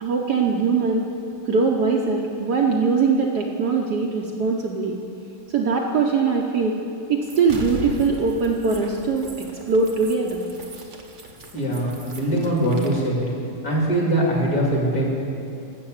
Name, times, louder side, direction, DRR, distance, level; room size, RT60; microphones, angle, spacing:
voice 1, 0.0-1.1 1.5-5.0 5.5-6.8 7.1-10.4, right 4 dB, 65° right, 1 dB, 1.1 m, -21 dB
sound 1, 7.2-13.1, right 2 dB, 45° right, 0.6 m, -39 dB
voice 2, 11.5-13.3 13.6-15.0, right 1 dB, 45° left, -3 dB, 2.6 m, -22 dB
12.5 x 7.6 x 7.2 m, 2.7 s
omnidirectional pair, 2.3 m